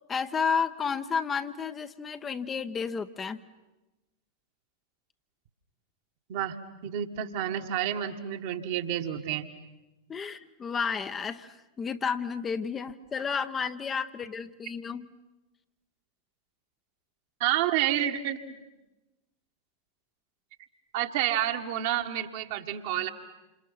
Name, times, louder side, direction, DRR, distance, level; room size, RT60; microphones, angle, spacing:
voice 1, 0.1-3.4 10.1-15.1, left 6 dB, 20° left, 9 dB, 1.0 m, -31 dB
voice 2, 6.3-9.5 17.4-18.6 20.9-23.1, right 11 dB, 50° right, 5 dB, 1.8 m, -29 dB
28.0 x 27.5 x 5.9 m, 1.1 s
figure-of-eight pair, 90°, 0 cm